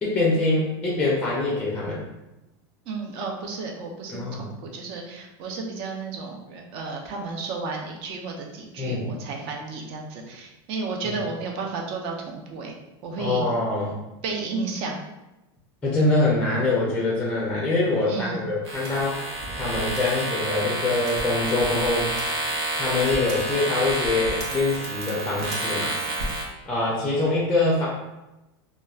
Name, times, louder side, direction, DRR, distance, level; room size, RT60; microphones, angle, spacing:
voice 1, 0.0-2.1 4.1-4.5 8.8-9.0 13.2-14.0 15.8-19.2 19.5-22.1 22.7-26.0 26.7-27.9, left 2 dB, 10° left, -4 dB, 0.5 m, -24 dB
voice 2, 2.9-12.7 13.0-13.5 14.2-15.0 18.1-18.4, right 4 dB, 45° right, 1 dB, 0.6 m, -33 dB
sound 1, 18.7-26.4, right 1 dB, 80° right, 0.9 m, -29 dB
3.0 x 2.2 x 2.3 m, 0.98 s
supercardioid pair, 140°, 13 cm